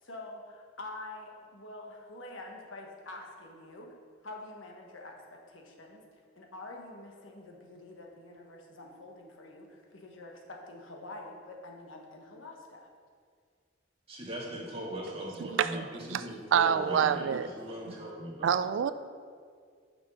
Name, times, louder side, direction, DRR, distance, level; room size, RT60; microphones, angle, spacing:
voice 1, 0.0-3.9 4.2-5.1 5.5-6.0 6.4-12.9, left 2 dB, 85° left, 1 dB, 1.2 m, -46 dB
voice 2, 14.1-18.6, equal, 30° right, -4 dB, 1.7 m, -40 dB
voice 3, 15.5-16.2 16.5-17.5 18.4-18.9, right 8 dB, 65° right, 12 dB, 0.3 m, -27 dB
6.2 x 6.0 x 5.8 m, 2.1 s
head